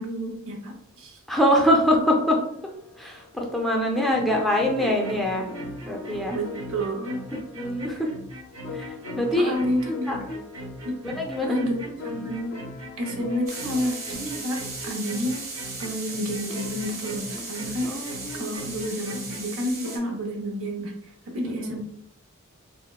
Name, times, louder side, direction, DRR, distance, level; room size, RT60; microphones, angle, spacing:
voice 1, 0.0-1.2 6.3-7.2 9.4-10.4 10.8-11.0 11.4-12.6 13.0-15.5 15.8-18.1 18.3-20.9 21.3-21.8, equal, 70° right, 1 dB, 0.6 m, -30 dB
voice 2, 1.3-2.4 3.0-5.5 5.9-6.4 7.5-8.1 8.7-9.6 10.1-10.2 11.1-11.6 17.8-18.5 21.4-21.8, equal, ahead, 0 dB, 0.4 m, -24 dB
sound 1, 2.2-20.0, left 4 dB, 65° left, 0.4 m, -43 dB
sound 2, 4.1-19.4, right 1 dB, 90° right, 1.1 m, -40 dB
sound 3, 13.5-20.0, right 3 dB, 30° right, 1.0 m, -37 dB
3.4 x 2.0 x 2.2 m, 0.72 s
head